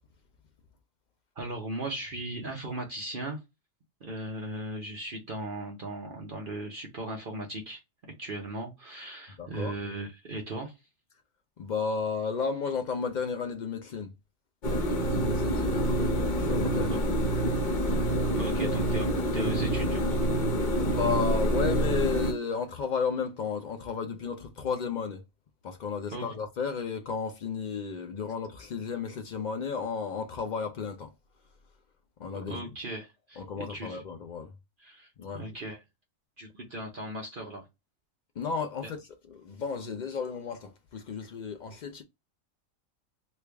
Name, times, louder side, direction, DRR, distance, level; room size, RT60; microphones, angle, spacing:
voice 1, 1.3-3.4 4.0-7.8 8.2-10.9 14.9-15.0 16.9-17.0 18.4-19.1 19.3-20.2 26.1-26.3 32.5-34.0 34.8-35.8 36.4-37.7 38.8-38.9, right 1 dB, 45° right, 0.9 m, -37 dB
voice 2, 9.4-9.7 11.6-14.1 15.1-16.0 16.4-17.7 18.5-18.6 20.7-25.2 25.6-31.1 32.2-32.7 33.4-34.5 35.2-35.4 38.4-39.0 39.3-42.0, left 5 dB, 75° left, 0.4 m, -33 dB
sound 1, 14.6-22.3, right 1 dB, 45° left, 0.7 m, -27 dB
3.3 x 2.3 x 3.3 m
omnidirectional pair, 1.4 m